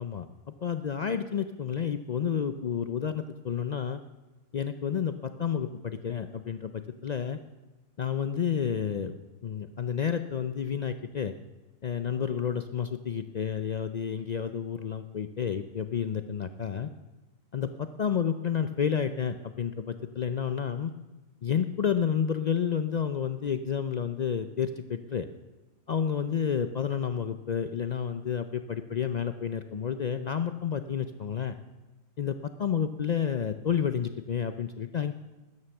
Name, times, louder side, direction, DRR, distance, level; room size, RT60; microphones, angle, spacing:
voice 1, 0.0-4.0 4.5-7.4 8.0-9.2 9.4-11.3 11.8-16.9 17.5-20.9 21.4-25.3 25.9-31.5 32.2-35.1, left 7 dB, 75° left, 10 dB, 0.4 m, -30 dB
13.0 x 9.6 x 7.0 m, 1.1 s
omnidirectional pair, 1.4 m